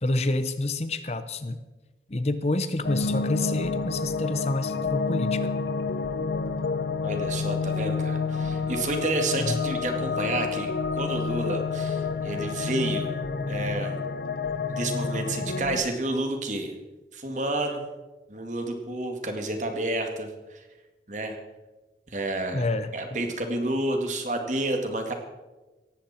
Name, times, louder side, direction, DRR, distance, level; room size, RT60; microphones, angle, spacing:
voice 1, 0.0-1.6 2.1-5.5 9.4-9.6 22.5-22.9, left 2 dB, 35° left, 11 dB, 0.7 m, -28 dB
sound 1, 2.8-15.8, left 4 dB, 70° left, 0.7 m, -29 dB
voice 2, 7.0-13.1 13.5-14.0 14.8-16.7 17.1-17.8 18.3-20.6 21.1-21.4 22.1-22.6 22.9-25.1, right 2 dB, 45° right, 4 dB, 2.1 m, -30 dB
18.0 x 15.0 x 4.4 m, 1.2 s
head